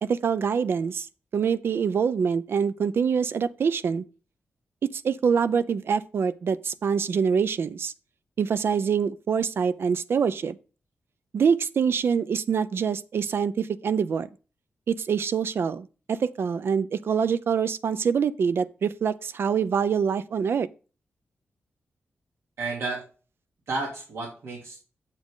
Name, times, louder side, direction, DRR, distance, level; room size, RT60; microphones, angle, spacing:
voice 1, 0.0-1.1 1.3-4.0 4.9-7.9 8.4-10.6 11.3-14.3 14.9-20.7, right 6 dB, 60° right, 0.5 m, -25 dB
voice 2, 22.6-23.0 23.7-24.8, right 3 dB, 80° right, 3.0 m, -31 dB
7.6 x 7.4 x 3.8 m
wide cardioid pair, 145°, 4 cm